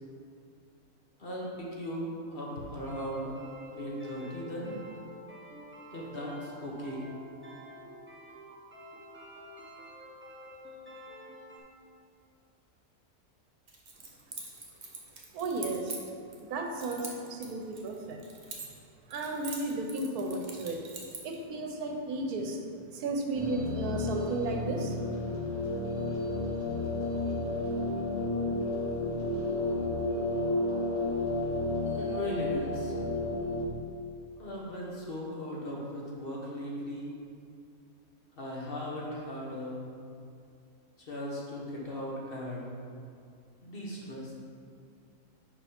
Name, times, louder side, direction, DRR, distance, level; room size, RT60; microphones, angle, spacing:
voice 1, 1.2-3.3 3.7-4.8 5.9-7.0 31.9-33.0 34.4-37.1 38.3-39.8 41.1-42.7 43.6-44.3, equal, 40° left, -4 dB, 1.2 m, -38 dB
sound 1, 2.9-11.6, equal, 10° right, 0.7 m, -49 dB
Keys jangling, 13.7-16.4 16.8-18.9 19.1-21.4, right 3 dB, 35° right, 0.9 m, -43 dB
voice 2, 15.3-16.0 16.3-18.2 19.1-20.8 21.2-22.6 22.9-25.0, right 2 dB, 80° right, 3 dB, 1.2 m, -34 dB
sound 2, 23.3-33.6, left 2 dB, 75° left, 2.1 m, -31 dB
5.5 x 5.0 x 5.0 m, 2.4 s
omnidirectional pair, 1.6 m